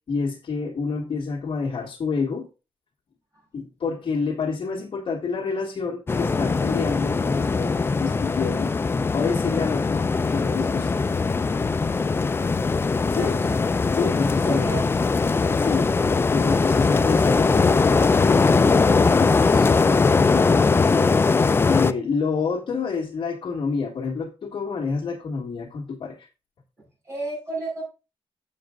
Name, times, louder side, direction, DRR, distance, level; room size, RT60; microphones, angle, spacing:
voice 1, 0.1-2.5 3.5-8.7 9.1-11.0 13.1-13.4 14.0-14.7 15.5-15.9 16.3-21.1 21.6-26.3, left 5 dB, 55° left, -4 dB, 1.7 m, -28 dB
sound 1, 6.1-21.9, left 4 dB, 25° left, 0.4 m, -20 dB
voice 2, 13.2-13.5 14.4-15.0 26.8-27.8, right 2 dB, 25° right, -9 dB, 5.6 m, -33 dB
7.5 x 7.0 x 3.7 m, 0.30 s
wide cardioid pair, 160°, 10 cm